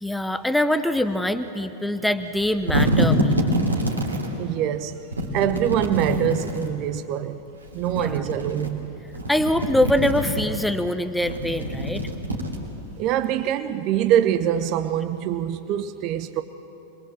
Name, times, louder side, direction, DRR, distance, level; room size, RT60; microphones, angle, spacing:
voice 1, 0.0-3.5 8.0-8.2 9.3-12.1, left 1 dB, 5° left, 0.9 m, -24 dB
sound 1, 2.3-4.3 5.1-6.7 7.6-8.7 9.1-10.6 11.2-13.0, equal, 80° right, 3.3 m, -25 dB
voice 2, 4.4-5.0 5.3-7.4 7.7-8.9 13.0-16.4, right 11 dB, 40° right, 0.9 m, -24 dB
26.5 x 22.0 x 7.7 m
figure-of-eight pair, 90°, 0 cm